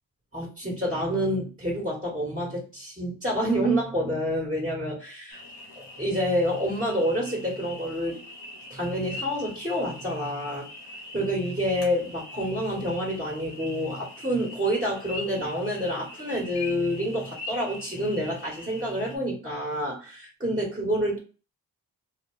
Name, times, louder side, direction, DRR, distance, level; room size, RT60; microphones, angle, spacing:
voice 1, 0.3-5.4 5.7-8.2 8.7-10.7 11.1-21.2, equal, 20° right, -3 dB, 1.5 m, -28 dB
sound 1, 5.3-19.2, left 2 dB, 90° left, 1.1 m, -42 dB
2.8 x 2.2 x 3.1 m, 0.35 s
cardioid pair, 50°, 41 cm